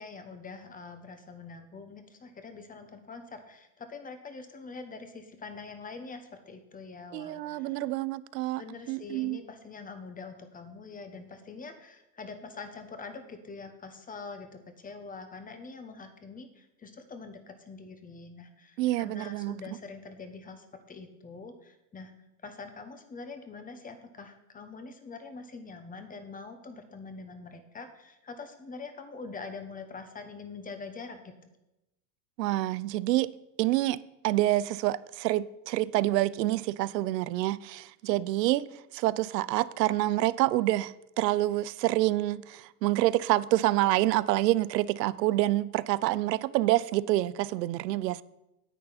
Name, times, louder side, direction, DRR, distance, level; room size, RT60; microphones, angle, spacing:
voice 1, 0.0-7.9 8.6-22.1 22.4-31.3, left 4 dB, 15° left, 1.3 m, -44 dB
voice 2, 7.1-8.6 8.9-9.4 18.8-19.5 32.4-33.3 33.6-34.0 34.2-38.7 38.9-48.2, right 16 dB, 75° right, 0.6 m, -27 dB
10.0 x 8.6 x 4.3 m
hypercardioid pair, 110°, 49 cm